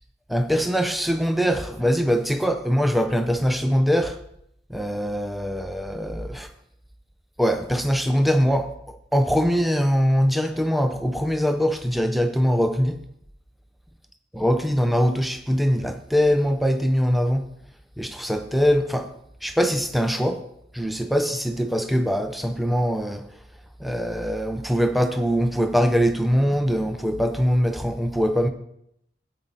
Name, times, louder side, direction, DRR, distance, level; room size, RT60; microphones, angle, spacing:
voice 1, 0.3-4.2 4.7-6.5 7.4-13.0 14.3-17.5 18.0-19.1 19.4-20.5 20.7-23.3 23.8-28.5, equal, ahead, 0.6 m, -22 dB
13.0 x 8.8 x 4.1 m
head